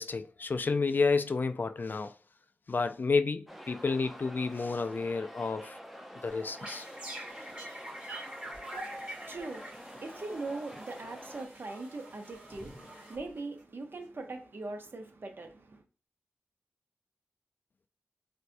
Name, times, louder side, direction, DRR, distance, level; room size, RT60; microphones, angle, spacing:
voice 1, 0.0-2.1 2.7-5.8 6.2-6.8, left 4 dB, 50° left, 0.3 m, -30 dB
sound 1, 3.5-11.5, equal, 5° right, 0.6 m, -47 dB
sound 2, 6.3-13.6, right 1 dB, 25° right, 1.6 m, -46 dB
voice 2, 8.7-15.8, right 3 dB, 60° right, 0.7 m, -41 dB
4.2 x 2.2 x 2.6 m
wide cardioid pair, 70°, 4 cm